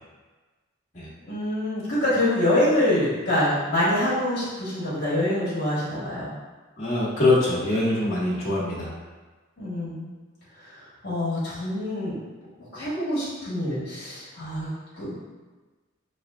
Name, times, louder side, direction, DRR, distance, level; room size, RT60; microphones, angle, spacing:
voice 1, 1.3-6.3 9.6-10.0 10.6-10.8 11.0-12.2 12.7-15.2, left 1 dB, 50° left, -10 dB, 1.4 m, -25 dB
voice 2, 6.8-8.9, left 2 dB, 35° left, -9 dB, 1.4 m, -23 dB
6.6 x 2.5 x 2.4 m, 1.3 s
head